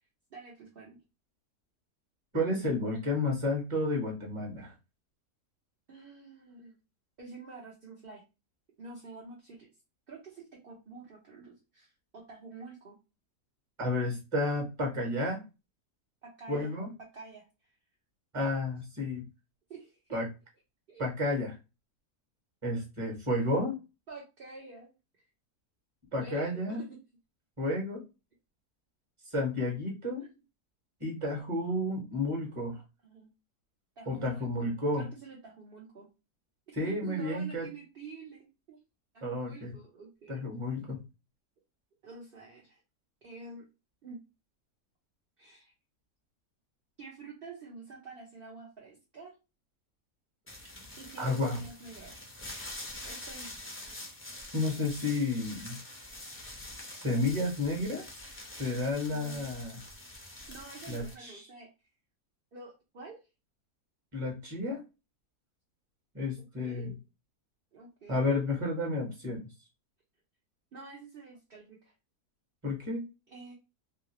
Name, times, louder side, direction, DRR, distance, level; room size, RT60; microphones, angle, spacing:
voice 1, 0.3-1.0 5.9-6.7 7.2-8.2 8.8-9.7 10.1-13.0 16.2-16.7 17.0-17.5 19.7-20.2 20.9-21.3 24.1-24.9 26.2-27.0 33.0-33.3 34.0-36.1 36.8-38.8 39.1-40.4 42.0-42.8 43.2-43.6 44.0-44.2 45.4-45.7 47.0-49.4 51.0-52.1 53.0-53.5 59.1-59.4 60.5-61.7 62.5-63.2 66.4-67.0 67.7-68.4 70.7-71.9 73.3-73.5, right 4 dB, 50° right, -3 dB, 0.7 m, -48 dB
voice 2, 2.3-4.7 13.8-15.4 16.5-16.9 18.3-19.3 20.1-20.3 21.0-21.5 22.6-23.8 26.1-26.8 27.6-28.0 29.3-30.2 31.0-32.8 34.1-35.1 36.8-37.7 39.2-39.8 40.3-41.0 51.2-51.6 54.5-55.8 57.0-58.0 58.6-59.8 60.9-61.4 64.1-64.8 66.1-66.9 68.1-69.5 72.6-73.1, left 2 dB, 20° right, 0 dB, 1.0 m, -31 dB
sound 1, 50.5-61.1, left 1 dB, 20° left, 0.4 m, -45 dB
2.8 x 2.8 x 2.9 m, 0.28 s
omnidirectional pair, 1.7 m